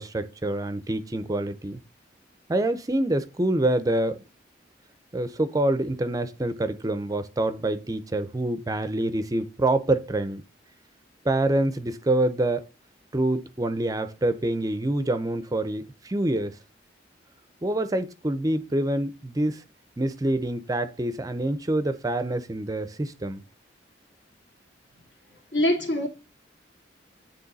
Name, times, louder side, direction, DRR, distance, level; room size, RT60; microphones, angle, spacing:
voice 1, 0.0-1.8 2.5-4.2 5.1-10.4 11.2-12.7 13.1-16.5 17.6-19.6 20.0-23.4, right 1 dB, 20° right, 0.5 m, -26 dB
voice 2, 25.5-26.1, left 1 dB, 75° left, 2.3 m, -23 dB
9.5 x 3.4 x 4.0 m
head